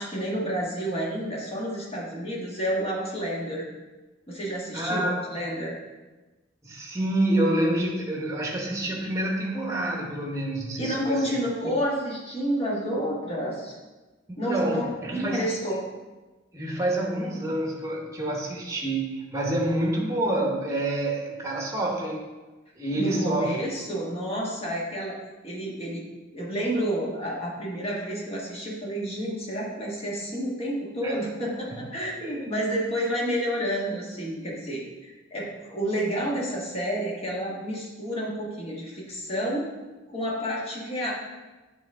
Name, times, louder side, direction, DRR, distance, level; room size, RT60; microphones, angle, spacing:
voice 1, 0.0-3.7 4.3-5.8 10.8-13.8 14.4-14.8 15.1-15.8 22.9-25.2 25.4-26.1 26.3-39.7 40.1-41.1, equal, 30° left, -4 dB, 1.4 m, -30 dB
voice 2, 4.7-5.3 6.6-11.4 14.3-15.5 16.5-22.3 22.8-23.6 31.0-31.1 31.7-31.8 32.2-32.5, right 1 dB, 15° right, -1 dB, 1.0 m, -27 dB
8.2 x 3.7 x 3.6 m, 1.2 s
head